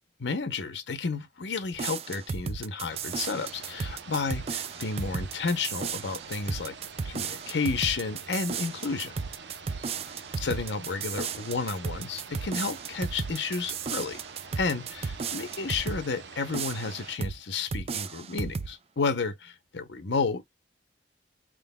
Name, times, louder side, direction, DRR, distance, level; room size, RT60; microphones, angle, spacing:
voice 1, 0.2-6.8 7.0-9.1 10.4-14.2 14.6-20.4, left 4 dB, 85° left, 0.8 m, -31 dB
sound 1, 1.7-16.1 16.5-17.4 17.7-18.7, right 5 dB, 35° right, 0.3 m, -34 dB
sound 2, 2.9-17.2, right 5 dB, 80° right, 0.7 m, -46 dB
4.5 x 3.8 x 2.2 m
head